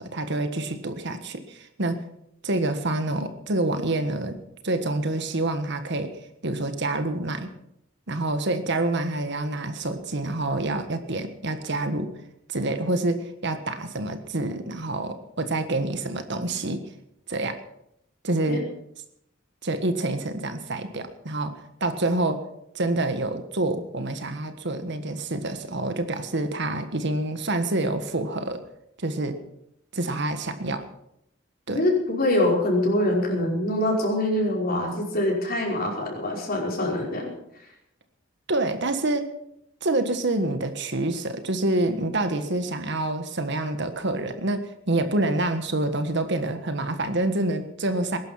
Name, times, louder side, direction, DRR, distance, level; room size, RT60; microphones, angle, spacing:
voice 1, 0.0-2.0 2.4-4.4 4.6-7.5 8.1-12.1 12.5-16.8 17.3-17.6 18.2-18.7 19.6-22.4 22.7-28.6 29.0-29.4 29.9-30.8 31.7-31.8 38.5-39.3 39.8-48.2, right 2 dB, 60° right, 8 dB, 1.6 m, -27 dB
voice 2, 31.7-37.3, left 1 dB, 50° left, -1 dB, 5.2 m, -24 dB
20.5 x 11.5 x 5.8 m, 0.78 s
head